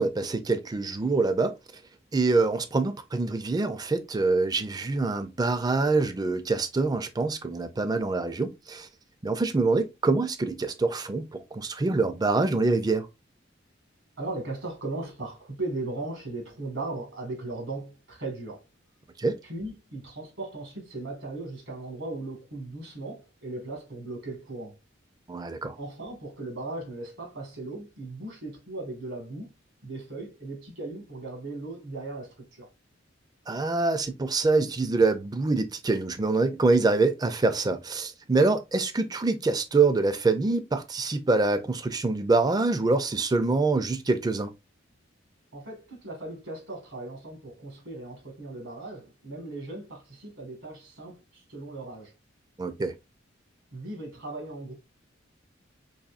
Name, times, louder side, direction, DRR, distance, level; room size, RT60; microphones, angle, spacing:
voice 1, 0.0-1.5 2.1-8.9 9.2-13.1 19.2-19.3 25.3-25.7 33.5-44.5 52.6-52.9, right 3 dB, 20° right, 0.4 m, -25 dB
voice 2, 14.2-18.6 19.4-24.8 25.8-29.5 29.8-32.7 45.5-52.1 53.7-54.7, right 2 dB, 75° right, 1.6 m, -37 dB
4.1 x 3.0 x 2.4 m
head